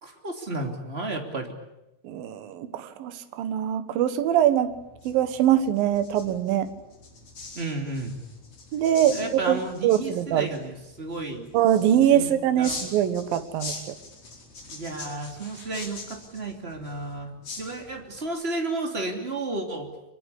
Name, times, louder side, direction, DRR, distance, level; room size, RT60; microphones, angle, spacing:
voice 1, 0.0-1.5 7.5-8.2 9.1-11.5 12.1-12.8 14.7-19.9, right 2 dB, 20° right, 3 dB, 2.0 m, -33 dB
voice 2, 2.0-4.8 5.0-6.7 8.7-10.5 11.5-13.7, right 10 dB, 65° right, 10 dB, 2.6 m, -23 dB
sound 1, 4.7-18.2, left 3 dB, 35° left, 5.6 m, -43 dB
25.0 x 23.0 x 8.5 m, 0.92 s
omnidirectional pair, 5.8 m